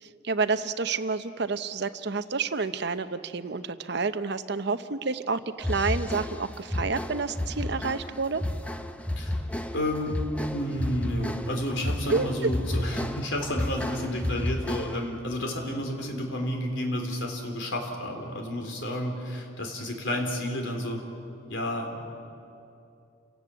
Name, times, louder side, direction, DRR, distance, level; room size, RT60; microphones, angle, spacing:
voice 1, 0.0-8.4 12.1-12.3, right 4 dB, 55° right, 11 dB, 0.8 m, -29 dB
sound 1, 5.6-15.2, left 1 dB, 5° left, 0.7 m, -32 dB
voice 2, 9.7-10.2 10.5-21.0 21.5-22.1, left 1 dB, 65° left, 3 dB, 3.9 m, -31 dB
29.0 x 17.5 x 8.5 m, 2.7 s
head